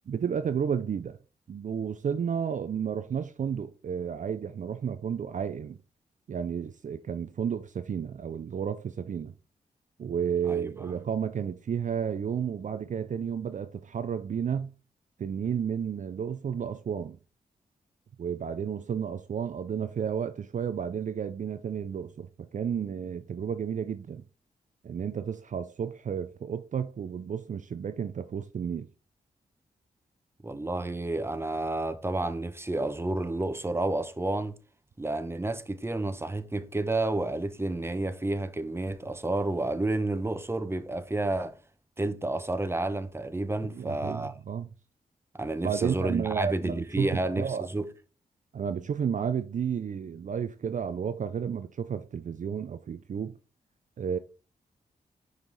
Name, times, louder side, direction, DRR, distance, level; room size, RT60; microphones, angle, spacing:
voice 1, 0.1-1.2 1.5-5.8 6.3-9.3 10.0-14.7 15.2-17.2 18.2-24.2 24.8-28.9 43.8-44.7 45.6-47.7 48.5-53.3 54.0-54.2, right 7 dB, 50° right, 0.5 m, -32 dB
voice 2, 30.4-34.5 35.0-41.5 42.0-44.3 45.3-47.9, right 2 dB, 15° right, 0.9 m, -30 dB
5.3 x 4.8 x 3.9 m
supercardioid pair, 45°, 16 cm